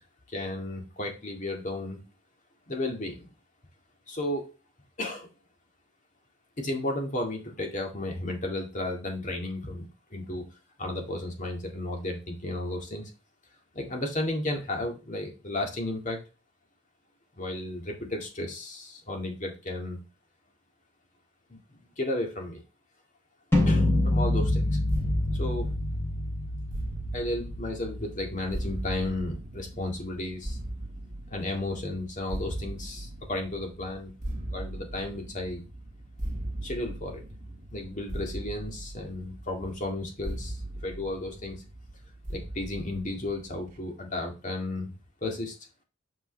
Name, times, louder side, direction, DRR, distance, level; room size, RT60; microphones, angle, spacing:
voice 1, 0.3-2.0 2.7-3.3 4.1-4.5 5.0-5.3 6.6-10.5 10.8-13.1 13.7-16.2 17.4-20.0 21.5-21.6 22.0-22.6 23.6-24.8 25.3-25.7 27.1-30.6 31.3-34.1 34.5-35.6 36.6-37.2 37.7-41.6 42.3-44.9 45.2-45.5, left 1 dB, 40° left, 2 dB, 2.0 m, -33 dB
sound 1, 23.5-29.5, left 1 dB, 10° left, 3.1 m, -28 dB
sound 2, 24.9-43.8, right 1 dB, 40° right, 1.6 m, -39 dB
7.9 x 5.4 x 3.3 m, 0.31 s
head